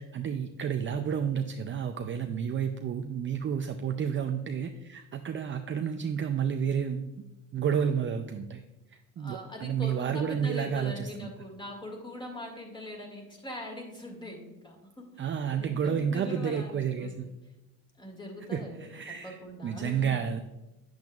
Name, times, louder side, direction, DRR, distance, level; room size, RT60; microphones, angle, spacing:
voice 1, 0.0-7.1 7.5-8.6 9.2-11.3 15.2-17.3 18.5-20.4, right 7 dB, 30° right, 6 dB, 0.5 m, -31 dB
voice 2, 9.2-17.3 18.0-20.2, left 1 dB, 10° left, 1 dB, 2.1 m, -42 dB
8.7 x 7.8 x 2.4 m, 1.0 s
supercardioid pair, 90°, 41 cm